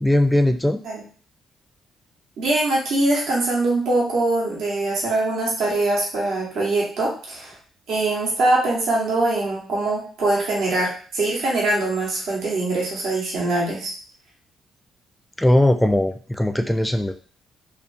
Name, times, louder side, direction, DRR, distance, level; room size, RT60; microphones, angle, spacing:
voice 1, 0.0-0.8 15.4-17.1, left 1 dB, 5° left, 6 dB, 0.4 m, -19 dB
voice 2, 2.4-7.5 7.9-13.9, right 2 dB, 75° right, -4 dB, 0.9 m, -22 dB
2.5 x 2.3 x 2.5 m, 0.42 s
supercardioid pair, 60°, 0 cm